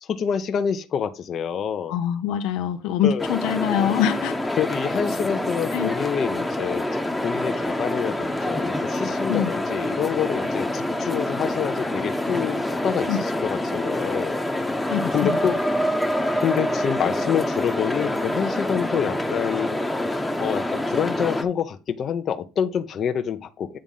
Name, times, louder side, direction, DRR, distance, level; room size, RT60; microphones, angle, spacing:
voice 1, 0.0-1.9 3.0-3.3 4.6-14.4 15.1-15.6 16.4-19.8 20.4-23.8, left 8 dB, 45° left, 0.8 m, -27 dB
voice 2, 1.9-4.4 5.7-5.9 9.3-9.5 13.1-13.2 14.9-15.3, left 9 dB, 80° left, 0.9 m, -24 dB
sound 1, 3.2-21.4, left 1 dB, 5° left, 1.1 m, -26 dB
8.8 x 3.6 x 5.4 m
cardioid pair, 110°, 0 cm